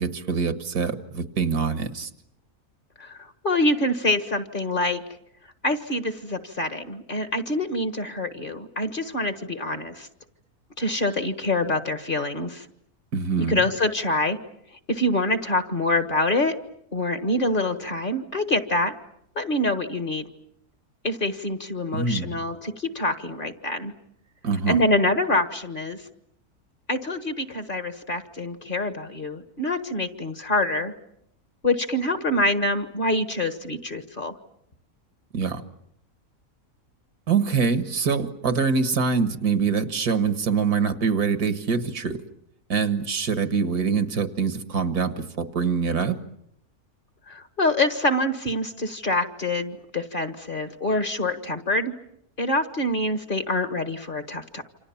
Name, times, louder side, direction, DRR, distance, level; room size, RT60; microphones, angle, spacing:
voice 1, 0.0-2.1 13.1-13.6 21.9-22.4 24.4-24.8 35.3-35.6 37.3-42.2 42.7-46.2, right 5 dB, 75° right, 9 dB, 2.1 m, -24 dB
voice 2, 3.0-5.0 5.6-10.1 10.8-12.7 13.5-14.4 14.9-16.6 16.9-18.9 19.3-20.3 21.0-23.9 24.7-26.0 26.9-30.9 31.6-34.3 47.3-51.9 52.4-54.6, left 1 dB, 35° left, 9 dB, 1.6 m, -25 dB
28.5 x 26.5 x 7.2 m, 0.75 s
omnidirectional pair, 1.6 m